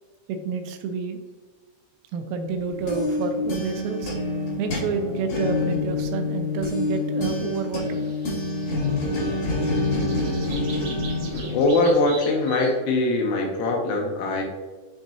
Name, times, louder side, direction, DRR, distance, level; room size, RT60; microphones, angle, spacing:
voice 1, 0.3-1.2 2.1-4.1 4.6-8.0, right 4 dB, 85° right, 5 dB, 3.2 m, -29 dB
sound 1, 2.5-12.2, left 2 dB, 60° left, 1.7 m, -27 dB
sound 2, 7.8-12.8, right 4 dB, 65° right, 1.7 m, -42 dB
voice 2, 11.2-14.4, left 2 dB, 80° left, 1 dB, 3.1 m, -22 dB
10.5 x 3.5 x 2.8 m, 1.3 s
omnidirectional pair, 6.0 m